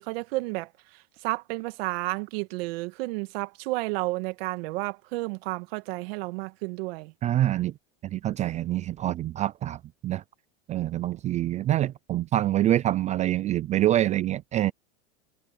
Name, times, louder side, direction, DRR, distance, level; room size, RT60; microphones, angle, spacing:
voice 1, 0.0-7.1, right 23 dB, 60° right, 1.9 m, -32 dB
voice 2, 7.2-7.7 8.0-10.2 10.7-14.7, right 13 dB, 20° right, 0.4 m, -26 dB
supercardioid pair, 135°, 34 cm